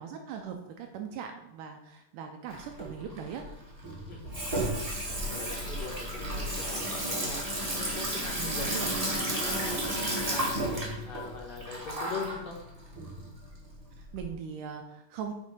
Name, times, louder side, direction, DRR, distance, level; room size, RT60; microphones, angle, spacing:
voice 1, 0.0-3.5 8.4-8.9 14.0-15.3, right 7 dB, 80° right, 4 dB, 2.0 m, -40 dB
Water tap faucet / Sink (filling or washing), 2.5-14.2, right 1 dB, 25° right, 0.8 m, -33 dB
voice 2, 4.1-7.4 7.7-12.6, left 5 dB, 60° left, -3 dB, 2.1 m, -42 dB
7.3 x 4.3 x 5.3 m, 0.87 s
omnidirectional pair, 4.1 m